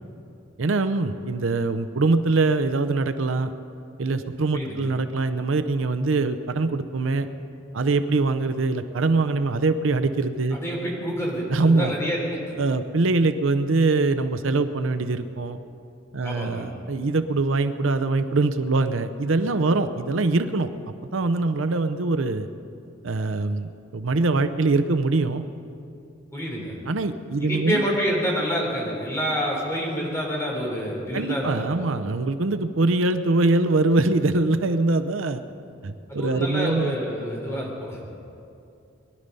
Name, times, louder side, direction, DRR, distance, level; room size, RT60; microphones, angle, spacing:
voice 1, 0.6-3.5 4.0-7.3 7.7-10.6 11.5-11.9 12.6-15.6 16.1-20.7 21.1-22.5 23.0-25.4 26.9-27.8 31.1-35.4 35.8-36.9, right 3 dB, 80° right, 10 dB, 0.7 m, -23 dB
voice 2, 4.5-4.9 10.6-12.4 16.2-16.7 26.3-26.8 27.4-31.6 36.1-38.0, equal, 15° left, -2 dB, 3.4 m, -27 dB
21.5 x 11.5 x 5.4 m, 2.6 s
head